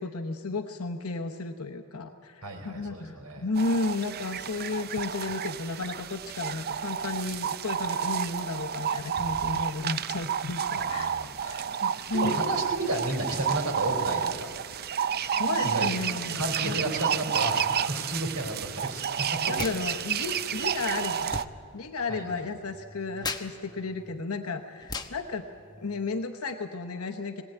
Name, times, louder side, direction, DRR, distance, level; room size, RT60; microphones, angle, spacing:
voice 1, 0.0-11.1 11.4-12.4 15.4-16.8 19.5-21.3 21.7-25.5 25.8-27.4, left 3 dB, 80° left, 6 dB, 1.0 m, -33 dB
voice 2, 2.4-3.5 10.8-11.6 12.1-14.5 15.6-15.9 16.3-19.6 22.1-22.4, right 1 dB, 90° right, 4 dB, 3.8 m, -32 dB
sound 1, 3.6-21.4, right 8 dB, 45° right, 0.5 m, -30 dB
sound 2, 19.6-19.8 20.1-26.3, left 3 dB, 20° left, 1.0 m, -40 dB
22.0 x 17.5 x 9.1 m, 2.5 s
head